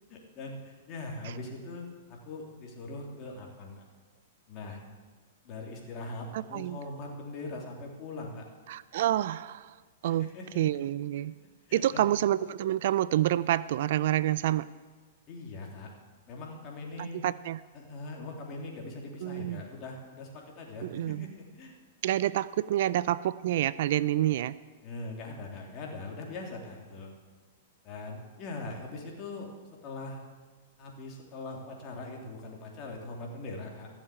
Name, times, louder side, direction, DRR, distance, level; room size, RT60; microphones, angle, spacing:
voice 1, 0.1-3.8 4.5-4.8 5.4-8.4 10.0-10.6 11.7-12.1 15.3-15.9 16.3-17.3 17.7-21.7 24.8-27.1 27.8-29.5 29.8-30.2 30.8-33.9, left 2 dB, 35° left, 0 dB, 3.1 m, -41 dB
voice 2, 6.3-6.8 8.7-9.7 10.0-10.3 10.6-11.3 11.7-14.7 17.0-17.6 19.2-19.6 20.8-21.3 22.0-24.6, right 13 dB, 65° right, 18 dB, 0.4 m, -28 dB
14.5 x 7.3 x 8.4 m, 1.4 s
hypercardioid pair, 135°, 0 cm